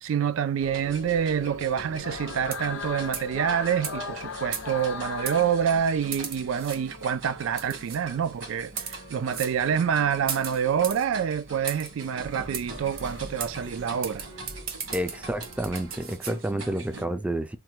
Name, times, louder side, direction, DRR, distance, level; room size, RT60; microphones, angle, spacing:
voice 1, 0.0-14.2, right 8 dB, 90° right, 0.3 m, -27 dB
sound 1, 0.6-17.0, right 1 dB, 70° right, 1.3 m, -42 dB
sound 2, 2.0-6.4, left 5 dB, 70° left, 0.5 m, -37 dB
sound 3, 2.5-2.8 3.1-3.3 3.8-4.0 4.5-4.9 5.3-5.4 6.1-6.8 7.6-8.0 8.6-9.0 9.3-9.6 10.3-11.0 11.7-11.9 12.5-12.7 13.0-13.1 13.4-13.5 14.0-16.3, right 7 dB, 50° right, 0.7 m, -35 dB
voice 2, 14.9-17.6, right 1 dB, 5° right, 0.3 m, -30 dB
3.2 x 2.1 x 3.0 m
head